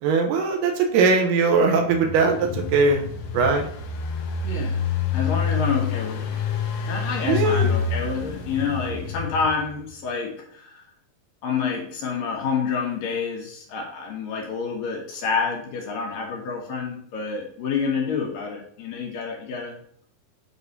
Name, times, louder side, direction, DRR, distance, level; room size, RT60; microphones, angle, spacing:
voice 1, 0.0-3.1 3.3-3.7 7.2-7.7, right 4 dB, 80° right, 3 dB, 2.9 m, -20 dB
Engine, 1.7-9.8, left 6 dB, 85° left, 1.7 m, -27 dB
voice 2, 4.4-4.8 5.1-6.4 6.9-10.8 11.4-19.8, left 5 dB, 65° left, 0 dB, 2.7 m, -28 dB
8.4 x 3.8 x 5.3 m, 0.63 s
omnidirectional pair, 4.7 m